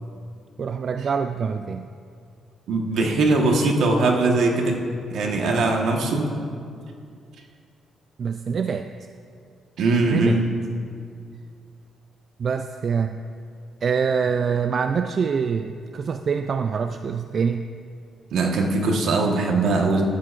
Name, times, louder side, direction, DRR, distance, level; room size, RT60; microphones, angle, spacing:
voice 1, 0.6-1.9 8.2-8.9 10.1-10.4 12.4-13.2 13.8-17.7, right 6 dB, 50° right, 8 dB, 0.3 m, -25 dB
voice 2, 2.7-4.8 5.1-6.3 9.8-10.5 18.3-20.0, right 3 dB, 75° right, 1 dB, 1.4 m, -21 dB
14.0 x 12.5 x 2.6 m, 2.3 s
cardioid pair, 100°, 0 cm